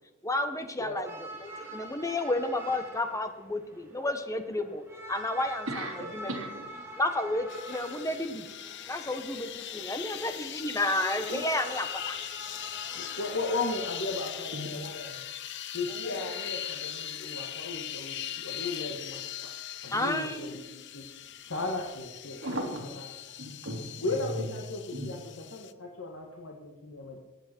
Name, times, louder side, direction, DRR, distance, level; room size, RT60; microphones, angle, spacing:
voice 1, 0.2-4.8 5.1-6.3 7.0-8.4 8.9-12.2 19.9-20.6, left 1 dB, 15° left, 8 dB, 1.2 m, -31 dB
voice 2, 0.8-1.1 11.3-11.5 12.9-15.2 15.7-19.5 19.8-21.0 21.5-22.4 22.9-23.1 24.0-27.2, left 2 dB, 75° left, 0 dB, 1.7 m, -36 dB
sound 1, 1.0-14.3, right 1 dB, 10° right, 2.3 m, -46 dB
voice 3, 1.5-1.8 5.7-6.8 14.5-14.7 22.4-23.1 23.4-24.0 24.4-24.5 24.9-25.1, right 1 dB, 70° right, 1 dB, 3.1 m, -37 dB
sound 2, 7.5-25.7, left 11 dB, 60° left, 0.7 m, -40 dB
22.0 x 8.6 x 4.5 m, 1.2 s
head